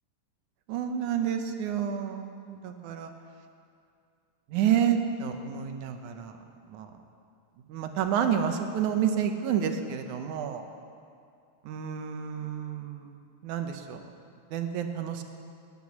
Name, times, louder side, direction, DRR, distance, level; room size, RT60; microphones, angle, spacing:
voice 1, 0.7-3.1 4.5-6.4 6.7-6.9 7.7-10.6 11.7-14.0 14.5-15.2, right 8 dB, 75° right, 6 dB, 2.4 m, -29 dB
18.5 x 10.0 x 7.2 m, 2.4 s
omnidirectional pair, 3.7 m